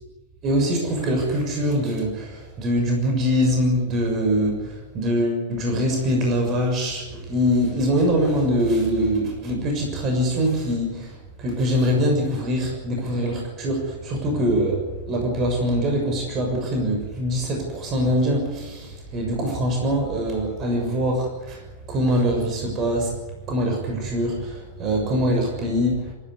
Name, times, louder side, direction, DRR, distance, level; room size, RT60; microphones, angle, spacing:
voice 1, 0.4-11.1 11.4-21.6 21.9-23.2 23.5-26.1, equal, 30° right, 2 dB, 6.7 m, -23 dB
26.0 x 15.5 x 9.7 m, 1.2 s
figure-of-eight pair, 90°, 0 cm